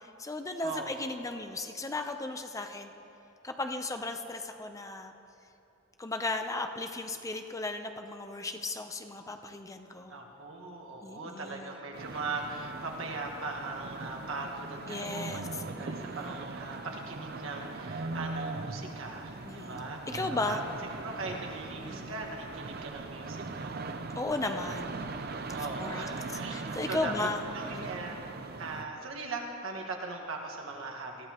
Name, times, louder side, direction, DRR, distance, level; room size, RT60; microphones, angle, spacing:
voice 1, 0.0-2.9 3.4-5.1 6.0-10.2 11.0-11.7 14.9-15.5 15.8-16.3 19.5-19.8 20.1-20.6 21.8-22.1 24.1-25.0 25.5-26.1 26.5-27.9, left 2 dB, 15° left, 6 dB, 0.6 m, -36 dB
voice 2, 0.6-1.0 10.1-20.0 20.3-20.6 21.0-23.8 25.5-28.2 28.6-31.3, right 3 dB, 85° right, 1 dB, 1.6 m, -40 dB
sound 1, 11.9-28.9, right 3 dB, 50° right, 0.6 m, -40 dB
20.5 x 14.5 x 3.0 m, 2.9 s
head